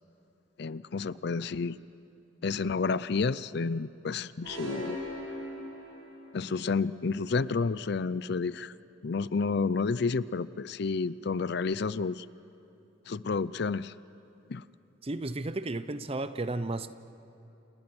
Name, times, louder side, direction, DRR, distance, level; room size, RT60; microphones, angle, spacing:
voice 1, 0.6-1.8 2.4-5.0 6.3-8.7 9.0-12.3 13.1-13.9 14.5-14.6, left 4 dB, 55° left, 0.5 m, -30 dB
sound 1, 4.4-6.4, equal, 85° right, 7.2 m, -39 dB
voice 2, 15.0-16.9, right 2 dB, 30° right, 0.7 m, -33 dB
29.5 x 28.5 x 6.2 m
head